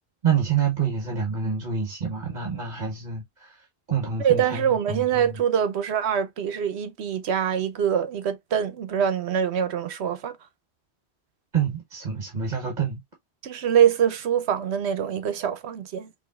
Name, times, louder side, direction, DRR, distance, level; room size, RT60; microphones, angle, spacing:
voice 1, 0.2-5.4 11.5-13.0, right 7 dB, 45° right, 1.2 m, -27 dB
voice 2, 4.2-10.4 13.4-16.1, right 8 dB, 75° right, 1.0 m, -24 dB
4.9 x 3.0 x 2.3 m
omnidirectional pair, 1.1 m